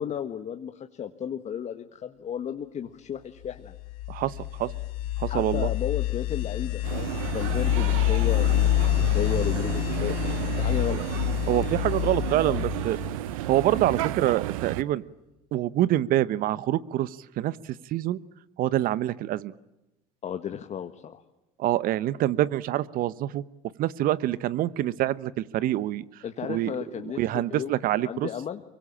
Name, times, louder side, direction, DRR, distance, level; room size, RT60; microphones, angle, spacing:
voice 1, 0.0-3.7 5.3-11.0 20.2-21.2 26.2-28.6, left 8 dB, 40° left, 6 dB, 1.7 m, -34 dB
sound 1, 3.6-14.2, left 16 dB, 80° left, 1.6 m, -27 dB
voice 2, 5.2-5.7 11.5-13.0 13.5-15.0 15.5-17.6 17.9-18.2 18.6-19.5 21.6-23.4 23.8-26.0 26.4-26.7 27.2-28.3, right 14 dB, 55° right, 18 dB, 1.1 m, -26 dB
sound 2, 6.8-14.8, right 14 dB, 80° right, 0.9 m, -32 dB
25.0 x 23.5 x 8.7 m, 0.93 s
hypercardioid pair, 75°, 17 cm